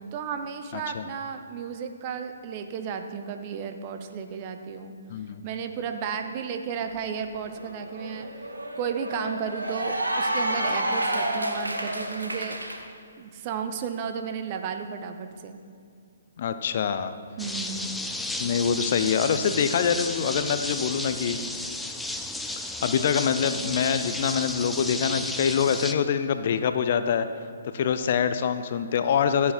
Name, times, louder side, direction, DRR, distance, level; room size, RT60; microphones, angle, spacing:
voice 1, 0.1-4.9 5.4-8.3 8.8-12.6 13.2-15.6 17.4-17.9, right 6 dB, 35° right, 7 dB, 0.8 m, -33 dB
voice 2, 0.7-1.0 5.1-5.4 16.4-17.1 18.4-21.4 22.5-22.6 22.8-27.3 27.7-29.5, left 7 dB, 50° left, 10 dB, 0.6 m, -25 dB
Cheering / Applause, 6.9-7.0 7.3-12.8, right 1 dB, 85° right, 1.3 m, -30 dB
sound 1, 17.4-25.9, left 2 dB, 5° left, 0.5 m, -33 dB
15.0 x 7.2 x 4.3 m, 2.4 s
figure-of-eight pair, 130°, 0 cm